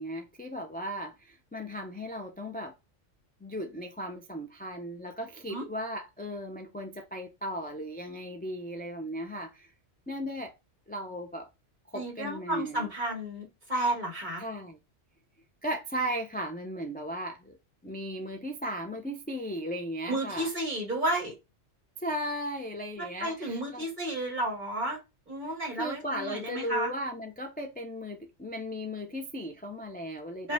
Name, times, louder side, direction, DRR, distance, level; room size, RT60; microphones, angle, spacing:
voice 1, 0.0-2.7 3.4-9.7 10.1-10.5 10.9-11.5 11.9-12.9 14.4-14.8 15.6-17.6 17.8-20.5 22.0-23.8 25.8-30.5, equal, 15° left, 0.3 m, -36 dB
voice 2, 11.9-14.4 20.1-21.3 23.0-25.0 25.3-26.9 30.4-30.5, right 1 dB, 40° right, 2.1 m, -32 dB
5.3 x 2.3 x 3.4 m
omnidirectional pair, 1.2 m